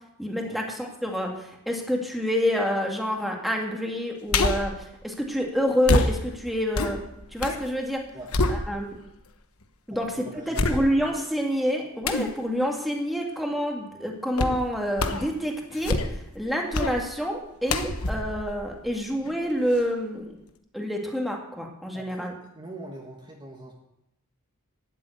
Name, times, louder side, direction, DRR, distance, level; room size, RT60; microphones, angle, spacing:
voice 1, 0.2-7.0 7.3-8.0 8.5-9.0 9.9-16.0 16.3-20.3 20.7-22.3, equal, ahead, 0 dB, 2.1 m, -28 dB
sound 1, 4.3-4.8 5.8-7.6 8.0-9.1 9.6-9.7 10.5-11.2 12.0-12.3 14.4-14.6 15.0-15.3 15.7-16.3 16.7-17.0 17.7-19.3 19.7-19.8, left 2 dB, 75° left, 1.2 m, -26 dB
voice 2, 8.1-8.6 9.9-10.9 21.9-23.7, right 1 dB, 20° right, -1 dB, 1.7 m, -43 dB
12.0 x 7.6 x 9.3 m, 0.81 s
head